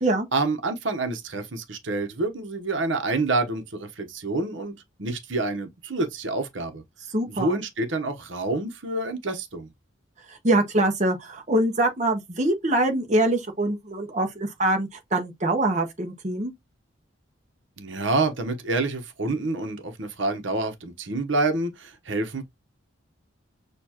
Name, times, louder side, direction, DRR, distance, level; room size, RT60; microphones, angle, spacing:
voice 1, 0.3-6.8 7.3-9.7 17.8-22.4, right 2 dB, 70° right, 1.0 m, -27 dB
voice 2, 7.1-7.6 10.3-16.5, right 1 dB, 35° right, 0.9 m, -24 dB
6.8 x 2.4 x 2.9 m
head